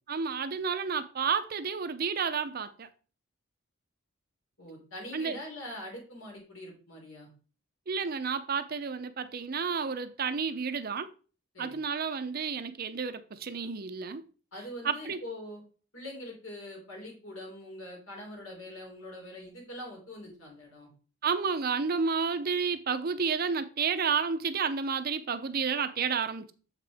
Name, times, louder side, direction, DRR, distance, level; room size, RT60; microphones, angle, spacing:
voice 1, 0.1-2.9 5.1-5.4 7.9-11.1 11.6-14.2 14.8-15.2 21.2-26.5, right 5 dB, 45° right, 0.5 m, -31 dB
voice 2, 4.6-7.3 11.5-11.8 14.5-15.6 15.9-20.9, left 1 dB, 75° left, 3.2 m, -43 dB
7.3 x 5.1 x 3.4 m
head